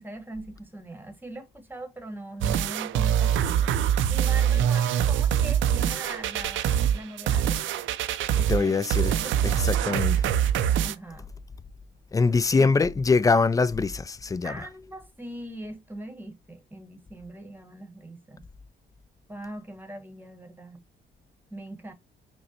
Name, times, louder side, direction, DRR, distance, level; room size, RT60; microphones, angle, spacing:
voice 1, 0.0-7.7 8.3-9.7 10.8-11.3 12.3-12.7 14.4-18.5 19.3-20.8 21.5-21.9, right 1 dB, 10° right, 1.1 m, -41 dB
sound 1, 2.4-10.9, right 9 dB, 75° right, 0.5 m, -24 dB
voice 2, 8.5-9.1 9.6-10.2 12.1-14.5, left 4 dB, 15° left, 0.3 m, -23 dB
5.2 x 2.1 x 2.7 m
cardioid pair, 90°, 20 cm